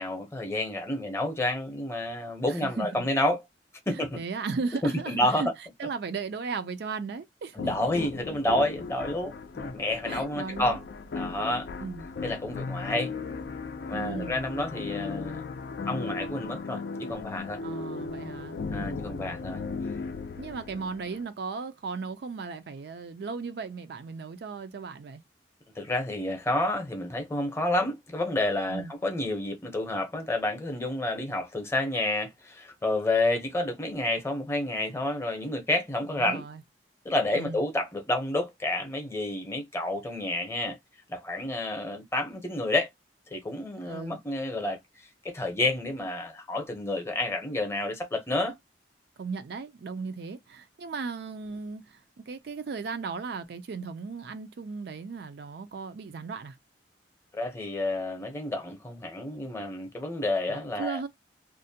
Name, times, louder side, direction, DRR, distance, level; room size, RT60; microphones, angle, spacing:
voice 1, 0.0-3.4 3.9-4.2 4.8-5.4 7.6-10.8 11.1-11.7 12.2-13.1 13.9-15.4 15.9-17.6 18.7-19.6 25.8-36.4 37.0-40.8 41.1-42.9 43.3-44.8 45.2-48.6 57.3-61.0, left 1 dB, 15° left, 0.7 m, -29 dB
voice 2, 2.5-3.0 3.9-5.5 5.8-7.6 10.1-10.8 11.8-12.1 13.9-14.5 17.6-19.0 20.4-25.2 28.7-28.9 36.1-36.6 37.3-37.6 43.8-44.2 49.2-56.6 60.5-61.1, right 4 dB, 65° right, 0.4 m, -36 dB
sound 1, 7.6-21.2, left 4 dB, 65° left, 0.4 m, -36 dB
2.5 x 2.1 x 2.7 m
head